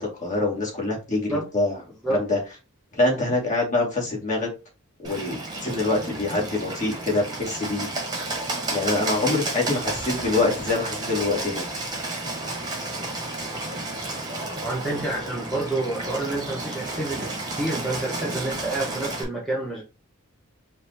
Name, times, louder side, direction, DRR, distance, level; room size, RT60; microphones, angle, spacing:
voice 1, 0.0-1.8 2.1-2.4 2.9-4.5 5.0-7.9 8.7-11.7, left 2 dB, 35° left, -2 dB, 2.1 m, -25 dB
Bird, 5.0-19.2, right 2 dB, 20° right, 1.2 m, -32 dB
voice 2, 14.6-19.8, right 2 dB, ahead, -5 dB, 1.0 m, -28 dB
5.2 x 2.5 x 3.3 m, 0.30 s
head